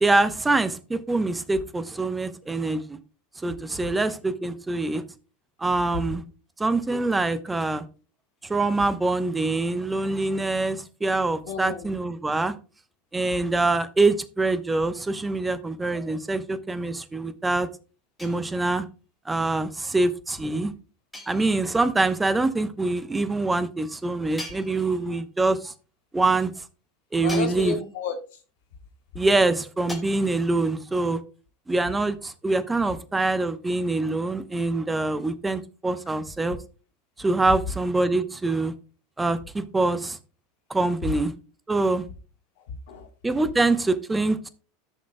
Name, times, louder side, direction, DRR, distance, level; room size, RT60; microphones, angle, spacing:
voice 1, 0.0-3.0 3.4-5.0 5.6-6.2 6.6-7.8 8.4-12.5 13.1-17.7 18.2-18.9 19.3-20.7 21.3-25.7 26.1-26.6 27.1-27.7 29.1-31.2 31.7-36.6 37.2-38.7 39.2-40.2 40.7-41.3 41.7-42.1 43.2-44.5, right 2 dB, 15° right, 12 dB, 0.9 m, -24 dB
voice 2, 11.4-12.0 27.2-28.4 42.6-43.1, left 6 dB, 65° left, 6 dB, 1.5 m, -33 dB
sound 1, 18.2-18.9 21.1-21.9 24.4-25.3 27.3-28.1 29.9-30.0, left 1 dB, 10° left, 3.3 m, -41 dB
14.0 x 6.3 x 2.3 m, 0.36 s
figure-of-eight pair, 80°, 0 cm